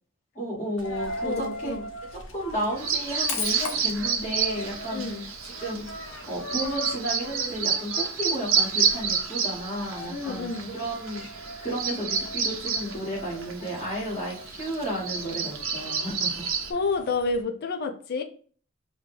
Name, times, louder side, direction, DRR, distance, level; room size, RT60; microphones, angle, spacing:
voice 1, 0.3-1.7 2.3-5.0 5.6-16.4, right 1 dB, 30° left, -6 dB, 2.0 m, -33 dB
Coin (dropping), 0.8-17.4, left 2 dB, 70° left, 0.9 m, -40 dB
voice 2, 1.2-1.9 4.9-5.3 10.1-10.7 16.7-18.2, left 3 dB, 50° left, 4 dB, 0.5 m, -29 dB
Bird vocalization bird call bird song, 2.8-16.7, right 6 dB, 85° right, 0.8 m, -30 dB
5.3 x 2.3 x 3.3 m, 0.43 s
head